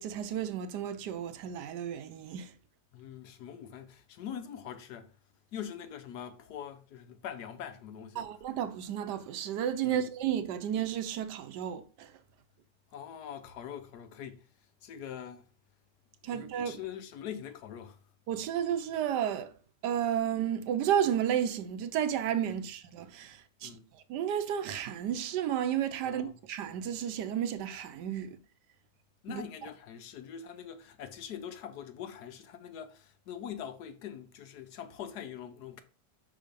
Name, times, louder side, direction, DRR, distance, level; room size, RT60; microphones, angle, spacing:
voice 1, 0.0-2.5 8.2-12.1 16.2-16.8 18.3-19.5 19.8-23.8 24.1-28.4 29.3-29.4, right 9 dB, 80° right, 1.3 m, -32 dB
voice 2, 2.9-5.1 5.5-8.3 9.8-10.0 12.9-14.5 14.8-15.5 16.2-18.0 22.5-22.7 23.6-23.8 26.0-26.4 29.2-35.8, left 9 dB, 75° left, 1.3 m, -43 dB
5.8 x 3.8 x 5.2 m
omnidirectional pair, 1.8 m